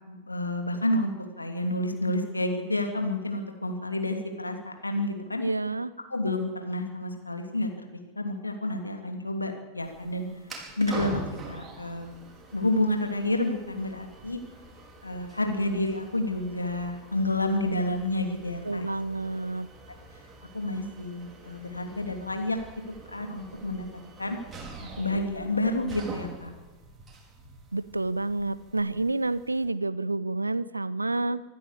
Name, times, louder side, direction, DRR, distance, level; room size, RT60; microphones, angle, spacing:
voice 1, 0.1-5.4 6.1-7.9 8.2-10.3 10.8-11.2 11.5-12.1 12.5-14.4 15.0-18.9 20.5-22.6 23.1-23.9 24.2-24.4 25.0-26.5, left 1 dB, 80° left, 5 dB, 2.9 m, -29 dB
voice 2, 5.4-5.9 18.6-19.7 27.7-31.4, right 2 dB, 80° right, 18 dB, 0.8 m, -29 dB
sound 1, 9.8-29.7, right 3 dB, 20° right, 5.0 m, -45 dB
25.0 x 13.5 x 8.3 m, 1.2 s
figure-of-eight pair, 90°, 0 cm